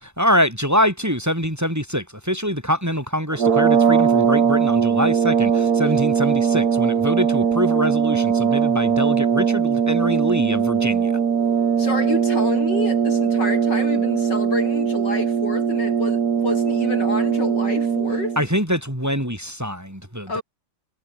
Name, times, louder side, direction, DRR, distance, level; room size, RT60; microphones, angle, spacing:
voice 1, 0.0-11.1 18.4-20.4, equal, 10° right, 5.7 m, -24 dB
sound 1, 3.3-18.5, right 7 dB, 60° right, 2.1 m, -20 dB
voice 2, 11.8-18.4 20.3-20.4, left 2 dB, 75° left, 7.9 m, -28 dB
omnidirectional pair, 1.9 m